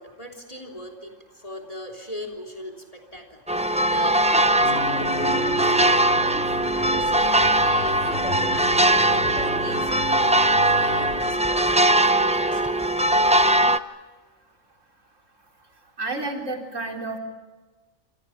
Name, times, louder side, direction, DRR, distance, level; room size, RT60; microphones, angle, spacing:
voice 1, 0.0-6.4 6.8-8.2 8.5-12.8, left 1 dB, 30° left, 5 dB, 3.7 m, -39 dB
sound 1, 3.5-13.8, right 1 dB, 5° right, 0.6 m, -20 dB
sound 2, 4.6-11.2, right 1 dB, 45° left, 6.2 m, -34 dB
voice 2, 16.0-17.2, right 2 dB, 90° right, 2 dB, 4.3 m, -30 dB
28.0 x 27.0 x 5.9 m, 1.2 s
omnidirectional pair, 1.3 m